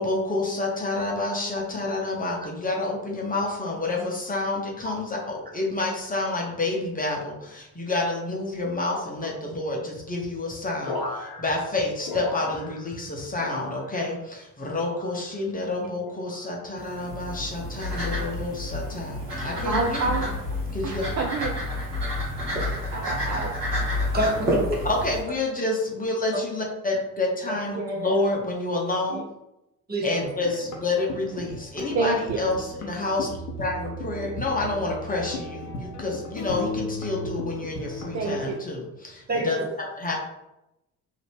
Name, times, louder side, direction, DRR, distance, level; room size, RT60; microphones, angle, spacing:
voice 1, 0.0-20.3 20.7-21.0 24.8-29.2 30.0-39.6 40.0-40.1, left 2 dB, 20° left, -2 dB, 0.8 m, -29 dB
sound 1, 10.8-13.1 13.3-14.2 14.7-15.4 16.0-16.5 17.4-17.7 18.7-19.0, left 2 dB, 50° left, 0.9 m, -37 dB
sound 2, 16.8-25.2, left 1 dB, 80° right, 1.2 m, -29 dB
voice 2, 19.6-20.3 20.8-21.5 22.9-23.5 27.7-28.2 29.1-29.2 31.9-32.4 38.1-38.5, right 3 dB, 40° right, 1 dB, 0.5 m, -28 dB
voice 3, 23.9-24.7 29.9-30.3 39.3-39.7, right 1 dB, 20° right, -1 dB, 0.8 m, -27 dB
sound 3, 30.2-38.5, left 2 dB, 75° left, 0.7 m, -36 dB
2.8 x 2.6 x 3.3 m, 0.89 s
figure-of-eight pair, 50°, 46 cm